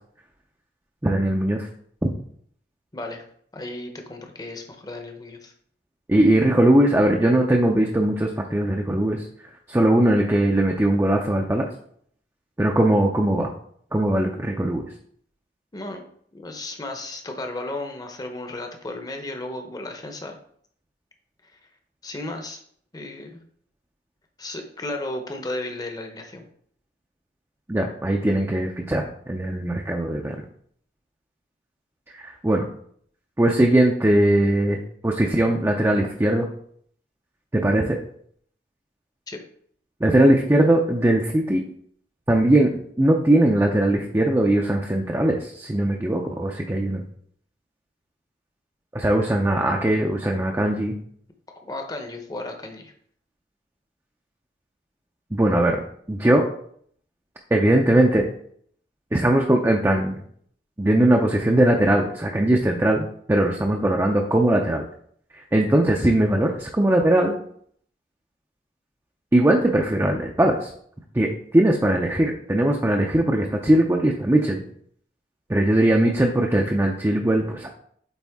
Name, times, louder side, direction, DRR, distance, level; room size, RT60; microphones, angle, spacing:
voice 1, 1.0-1.7 2.0-2.1 6.1-9.2 9.7-11.7 12.6-13.5 13.9-14.9 27.7-30.4 32.1-32.7 33.4-36.5 37.5-38.0 40.0-41.6 42.3-42.7 43.0-47.0 48.9-50.9 55.3-55.8 56.1-56.4 57.5-58.2 59.1-60.2 60.8-64.8 65.5-67.4 69.3-70.7 71.1-74.6 75.5-77.7, right 1 dB, 15° right, 1 dB, 0.5 m, -20 dB
voice 2, 2.9-3.2 3.5-5.5 15.7-16.0 16.3-20.4 21.4-21.6 22.0-22.6 22.9-23.4 24.4-26.5 39.3-39.4 51.7-52.9, left 2 dB, 20° left, 4 dB, 0.8 m, -34 dB
8.3 x 3.6 x 3.6 m, 0.63 s
head